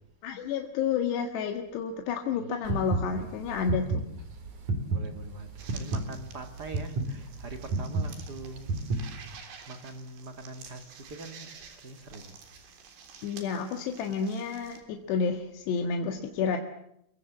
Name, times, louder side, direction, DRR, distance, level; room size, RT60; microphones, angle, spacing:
voice 1, 0.2-4.0 13.2-16.6, left 6 dB, 70° left, 4 dB, 3.9 m, -30 dB
sound 1, 2.6-9.4, right 3 dB, 45° right, 4.3 m, -31 dB
voice 2, 4.9-8.8 9.7-11.5 11.8-12.3, right 2 dB, 65° right, 6 dB, 0.9 m, -43 dB
sound 2, 5.6-14.8, right 6 dB, 85° right, 5.9 m, -50 dB
30.0 x 23.0 x 7.4 m, 0.76 s
omnidirectional pair, 5.1 m